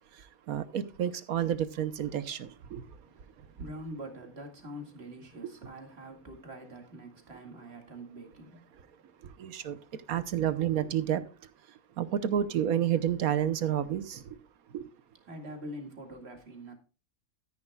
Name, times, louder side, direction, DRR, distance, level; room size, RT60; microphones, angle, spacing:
voice 1, 0.5-2.8 9.4-9.8 10.1-11.2 12.0-14.2 14.7-14.8, right 10 dB, 75° right, 1.3 m, -29 dB
voice 2, 2.8-8.9 15.3-16.7, equal, 40° right, 2.4 m, -45 dB
13.0 x 10.5 x 2.3 m
omnidirectional pair, 1.6 m